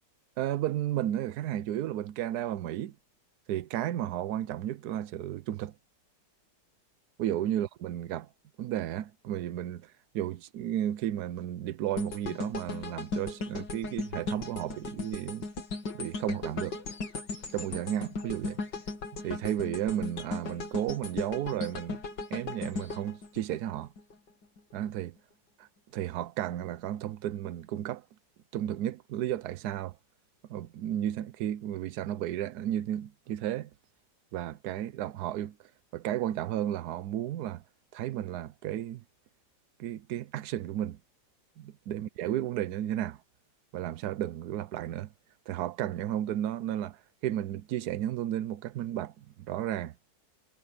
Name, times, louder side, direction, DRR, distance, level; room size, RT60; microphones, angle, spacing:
voice 1, 0.4-3.0 3.5-5.7 7.2-8.3 8.6-15.5 15.9-16.8 17.5-18.6 19.1-22.0 22.3-23.9 24.7-25.2 25.6-28.0 28.5-30.0 30.5-33.7 34.3-35.6 35.9-37.6 37.9-39.0 39.8-41.0 41.6-43.2 43.7-45.1 45.5-49.9, right 12 dB, 70° right, 1.2 m, -33 dB
sound 1, 12.0-24.1 24.6-24.7, left 3 dB, 70° left, 3.0 m, -37 dB
omnidirectional pair, 1.9 m